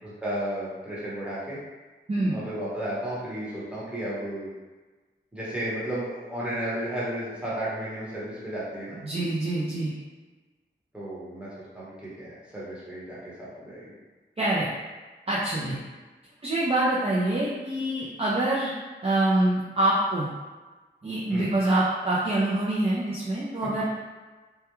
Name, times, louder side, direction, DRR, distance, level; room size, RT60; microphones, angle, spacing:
voice 1, 0.0-1.6 2.3-4.5 5.3-9.0 10.9-13.9 21.3-21.5, right 1 dB, 5° right, -9 dB, 0.9 m, -33 dB
voice 2, 2.1-2.4 9.0-9.9 14.4-14.7 15.3-15.8 16.4-18.7 19.0-20.3 21.0-23.8, right 1 dB, 30° right, -8 dB, 0.4 m, -25 dB
2.2 x 2.2 x 2.9 m, 1.3 s
wide cardioid pair, 90°, 20 cm